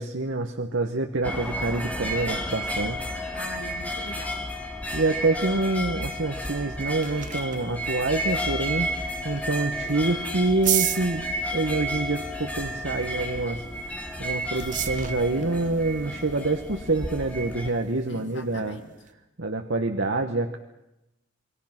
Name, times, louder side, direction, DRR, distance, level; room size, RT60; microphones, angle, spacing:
voice 1, 0.0-3.1 4.9-11.3 11.5-13.6 13.9-18.8 19.4-20.6, right 2 dB, 75° right, 4 dB, 1.3 m, -27 dB
sound 1, 1.2-17.7, equal, 10° left, 2.6 m, -32 dB
voice 2, 3.3-4.5 18.1-18.9, left 2 dB, 65° left, 6 dB, 2.4 m, -41 dB
sound 2, 6.6-19.1, right 11 dB, 40° right, 1.2 m, -36 dB
28.5 x 21.5 x 6.0 m, 0.91 s
head